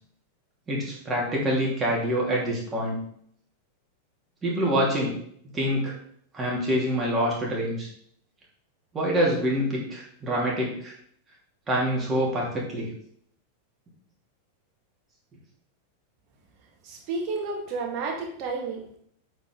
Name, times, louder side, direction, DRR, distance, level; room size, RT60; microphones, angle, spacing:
voice 1, 0.7-3.0 4.4-5.2 5.5-6.0 6.3-7.9 8.9-10.9 11.7-12.9, equal, 20° right, -4 dB, 3.0 m, -26 dB
voice 2, 16.8-19.0, right 3 dB, 40° right, 0 dB, 1.9 m, -31 dB
8.1 x 5.1 x 3.9 m, 0.65 s
figure-of-eight pair, 90°, 0 cm